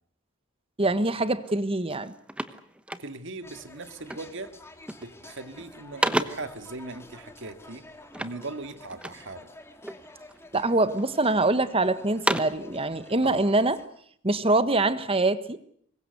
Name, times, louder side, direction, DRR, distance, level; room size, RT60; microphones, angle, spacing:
voice 1, 0.8-2.1 10.5-13.8 14.2-15.6, right 2 dB, 25° right, 13 dB, 1.4 m, -24 dB
sound 1, 1.4-1.6 1.9-3.5 4.1-4.4 4.7-5.2 5.6-6.6 8.1-9.3 9.8-10.5 11.0-11.6 12.0-12.7, right 1 dB, 5° right, 1.1 m, -32 dB
voice 2, 3.0-4.6 5.0-7.9 8.2-9.5 13.2-13.5, right 3 dB, 60° right, 9 dB, 2.1 m, -39 dB
sound 2, 3.4-13.9, left 2 dB, 10° left, 2.6 m, -50 dB
25.0 x 22.0 x 8.1 m, 0.65 s
head